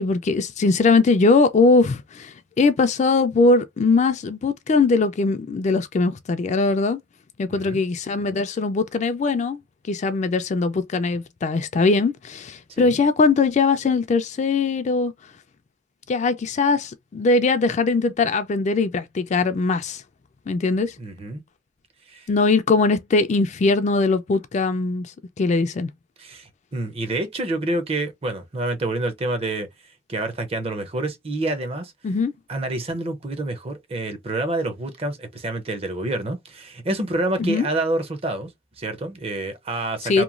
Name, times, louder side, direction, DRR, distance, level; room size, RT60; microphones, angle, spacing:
voice 1, 0.0-7.0 7.4-9.6 9.9-15.1 16.1-20.0 20.5-20.9 22.3-25.1 25.4-25.9 32.0-32.3 37.4-37.7 40.0-40.2, left 3 dB, 40° left, 0.3 m, -21 dB
voice 2, 7.5-7.8 12.7-13.0 21.0-21.4 22.1-22.3 26.2-29.7 30.1-31.9 32.5-38.5 38.8-40.2, right 2 dB, 30° right, 0.5 m, -28 dB
2.9 x 2.2 x 2.4 m
head